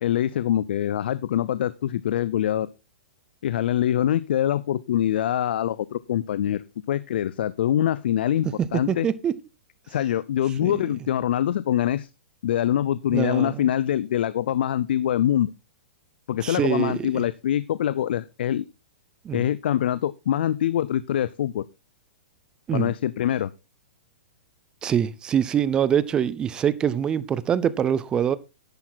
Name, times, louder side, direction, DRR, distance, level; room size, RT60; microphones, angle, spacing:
voice 1, 0.0-2.7 3.4-9.1 9.9-12.1 12.4-15.5 16.3-18.7 19.3-21.6 22.7-23.5, left 11 dB, 60° left, 0.5 m, -24 dB
voice 2, 8.6-9.4 10.6-10.8 13.1-13.6 16.4-17.2 19.2-19.4 22.7-22.9 24.8-28.4, right 9 dB, 15° right, 0.5 m, -24 dB
10.5 x 8.8 x 4.0 m
hypercardioid pair, 165°, 6 cm